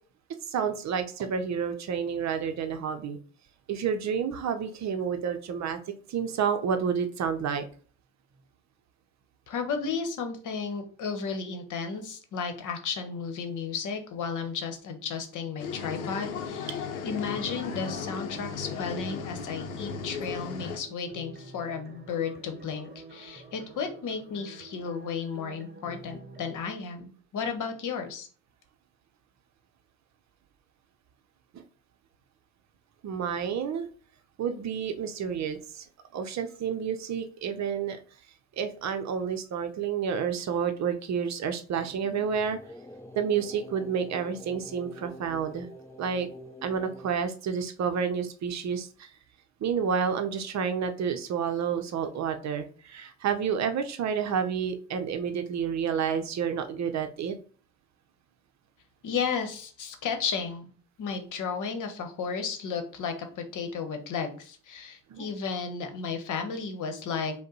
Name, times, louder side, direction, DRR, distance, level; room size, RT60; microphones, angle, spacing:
voice 1, 0.5-3.2 3.7-5.8 6.1-7.6 31.5-31.6 33.0-33.9 34.4-35.8 36.1-38.0 38.6-42.6 43.2-45.7 46.0-46.3 46.6-49.1 49.6-57.4 65.1-65.3, right 7 dB, 40° right, 8 dB, 0.7 m, -30 dB
voice 2, 9.5-28.3 59.0-60.7 61.0-67.3, left 5 dB, 45° left, 6 dB, 1.1 m, -33 dB
sound 1, 15.6-20.8, left 6 dB, 85° left, 0.7 m, -36 dB
sound 2, 17.0-26.6, right 2 dB, 25° right, 1.1 m, -48 dB
sound 3, 41.7-47.1, equal, 5° left, 0.5 m, -46 dB
5.1 x 2.3 x 4.0 m, 0.42 s
hypercardioid pair, 55°, 41 cm